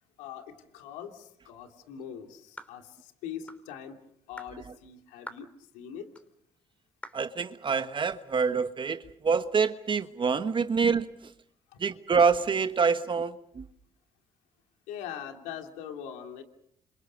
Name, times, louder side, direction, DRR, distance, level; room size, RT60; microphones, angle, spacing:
voice 1, 0.2-4.0 4.3-6.1 11.7-11.8 14.9-16.4, left 9 dB, 85° left, 2.9 m, -42 dB
sound 1, 2.6-2.8 3.5-3.7 4.4-4.6 5.3-5.5 6.1-6.3 7.0-7.3, left 1 dB, 10° left, 3.4 m, -44 dB
voice 2, 7.1-11.1 11.8-13.6, right 5 dB, 40° right, 1.3 m, -26 dB
29.5 x 26.5 x 5.4 m
supercardioid pair, 60°, 13 cm